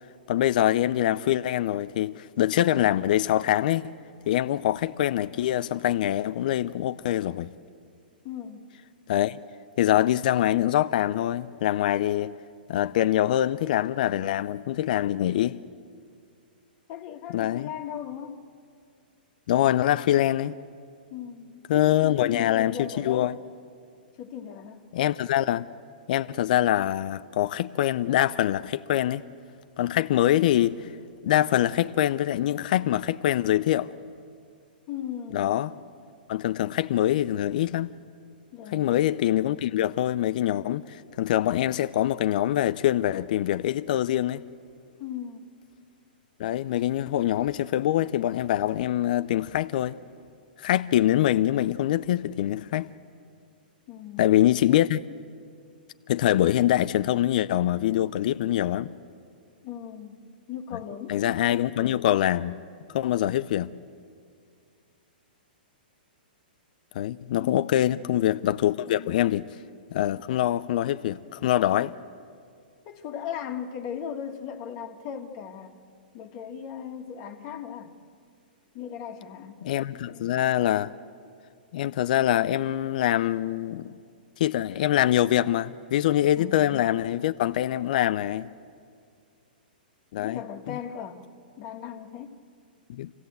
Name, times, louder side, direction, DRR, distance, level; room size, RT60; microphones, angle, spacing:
voice 1, 0.3-3.8 4.3-7.5 9.1-9.4 9.8-12.3 12.7-15.6 17.3-17.7 19.5-20.6 21.7-23.4 24.9-25.7 26.1-29.2 29.8-30.9 31.2-33.9 35.3-35.7 36.3-37.9 38.7-44.4 46.4-50.0 50.6-52.9 54.2-55.0 56.1-58.9 61.1-62.6 62.9-63.7 66.9-69.5 69.9-71.9 79.6-80.9 81.7-84.0 84.4-88.5 90.1-90.8 92.9-93.1, left 12 dB, 60° left, 0.5 m, -24 dB
voice 2, 8.2-8.6 16.9-18.4 21.1-23.3 24.2-24.8 34.9-35.6 38.5-39.0 45.0-45.5 53.9-54.3 59.6-60.2 60.5-61.4 67.4-68.1 68.9-69.2 72.9-75.8 76.1-77.9 78.7-79.6 86.4-86.8 90.2-91.2 91.6-92.3, left 9 dB, 40° left, 1.7 m, -37 dB
27.5 x 16.0 x 7.9 m
hypercardioid pair, 125°, 5 cm